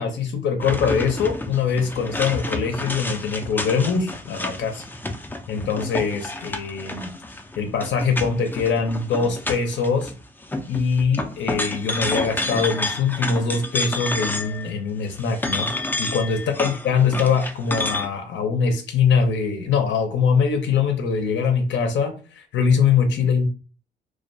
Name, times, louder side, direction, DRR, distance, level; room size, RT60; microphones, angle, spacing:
voice 1, 0.0-4.8 5.5-7.1 7.6-10.1 10.7-15.7 16.0-23.5, left 5 dB, 65° left, 4 dB, 0.5 m, -22 dB
sound 1, 0.6-10.1 10.4-14.7 15.1-18.1, left 2 dB, 10° left, 0.3 m, -29 dB
2.2 x 2.2 x 2.6 m, 0.36 s
cardioid pair, 90°, 20 cm